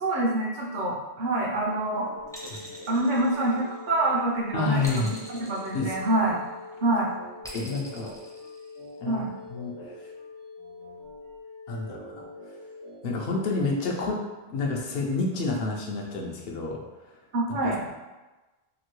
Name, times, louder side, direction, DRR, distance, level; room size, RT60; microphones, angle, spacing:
voice 1, 0.0-2.1 2.9-6.4 6.8-7.1 9.0-9.3 17.3-17.8, right 2 dB, 55° right, -3 dB, 0.7 m, -26 dB
sound 1, 1.6-14.0, left 2 dB, 85° right, 1.1 m, -44 dB
sound 2, 2.3-4.0 4.8-6.5 7.4-9.0, equal, 5° left, 0.5 m, -44 dB
voice 2, 4.5-5.1 5.7-6.0 7.5-8.1 9.0-9.7 11.7-12.3 13.0-14.2 14.5-16.8 17.6-17.7, left 3 dB, 70° left, 0 dB, 0.8 m, -29 dB
2.9 x 2.6 x 3.0 m, 1.1 s
omnidirectional pair, 1.0 m